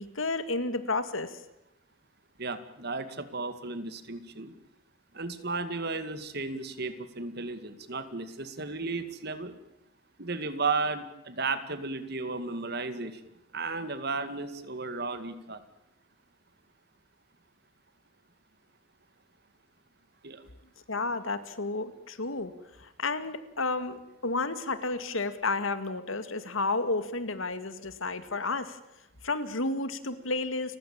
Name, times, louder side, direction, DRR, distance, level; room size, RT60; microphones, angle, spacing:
voice 1, 0.0-1.4 20.9-22.5 22.8-28.8 29.2-30.8, left 3 dB, 85° left, 11 dB, 2.2 m, -31 dB
voice 2, 2.4-4.5 5.1-9.6 10.2-13.2 13.5-15.6 20.2-20.4, right 3 dB, 55° right, 11 dB, 2.2 m, -34 dB
29.5 x 15.5 x 8.9 m, 0.88 s
head